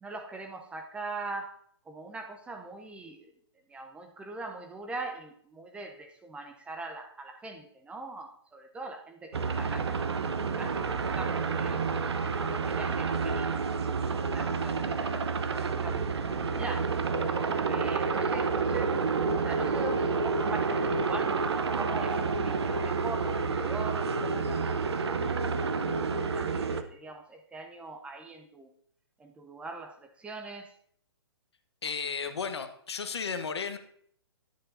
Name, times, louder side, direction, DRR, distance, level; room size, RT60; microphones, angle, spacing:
voice 1, 0.0-1.6 1.9-3.3 3.7-10.1 10.4-11.8 12.5-13.5 14.0-16.9 17.7-18.9 19.3-22.2 22.4-24.8 25.1-26.0 26.3-28.7 29.2-30.7, right 3 dB, 10° right, 5 dB, 0.5 m, -42 dB
sound 1, 9.3-26.8, right 4 dB, 70° right, 0.7 m, -29 dB
voice 2, 31.8-33.8, left 5 dB, 75° left, 8 dB, 0.9 m, -34 dB
10.5 x 7.5 x 2.6 m, 0.65 s
figure-of-eight pair, 130°, 14 cm